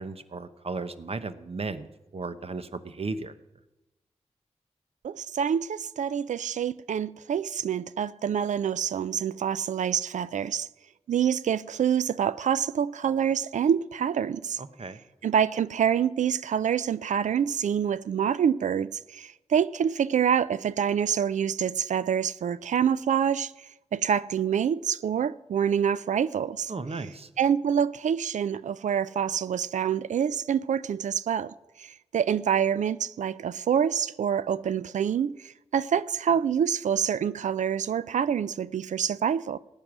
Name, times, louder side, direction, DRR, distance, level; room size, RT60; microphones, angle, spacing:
voice 1, 0.0-1.9 2.1-3.3 14.6-15.0 26.7-27.3, right 3 dB, 55° right, 0.9 m, -35 dB
voice 2, 5.0-10.7 11.1-14.6 15.2-23.5 23.9-26.7 27.4-31.5 31.8-39.6, right 8 dB, 85° right, 0.4 m, -26 dB
14.5 x 9.0 x 6.1 m
cardioid pair, 50°, 12 cm